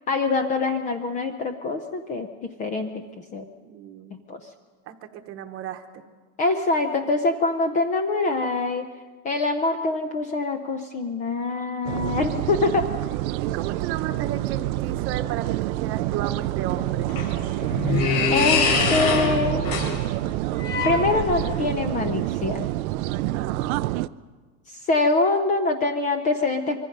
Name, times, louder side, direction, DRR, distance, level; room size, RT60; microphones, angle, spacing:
voice 1, 0.1-2.3 2.6-3.0 3.3-3.4 4.3-4.4 6.4-8.9 9.2-12.9 18.3-19.7 20.8-22.7 24.7-26.8, left 3 dB, 20° left, 7 dB, 0.6 m, -24 dB
voice 2, 3.6-4.2 4.9-6.0 13.4-17.1 23.3-24.0, right 10 dB, 30° right, 7 dB, 1.1 m, -34 dB
sound 1, 11.8-24.1, right 17 dB, 80° right, 0.7 m, -27 dB
sound 2, 16.7-21.7, left 5 dB, 80° left, 4.6 m, -25 dB
25.5 x 23.5 x 5.3 m, 1.4 s
supercardioid pair, 180°, 42 cm